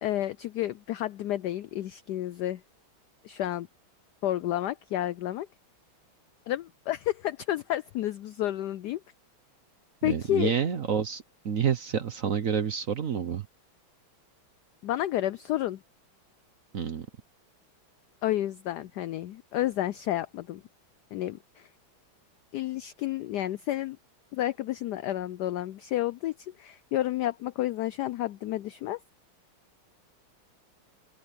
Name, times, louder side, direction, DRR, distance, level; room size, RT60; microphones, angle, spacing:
voice 1, 0.0-2.6 3.2-3.7 4.2-5.5 6.5-9.0 10.0-10.5 14.8-15.8 18.2-20.6 21.1-21.7 22.5-24.0 24.3-29.0, left 13 dB, 80° left, 0.9 m, -30 dB
voice 2, 10.0-13.5 16.7-17.1, right 7 dB, 50° right, 1.1 m, -29 dB
open air
omnidirectional pair, 2.3 m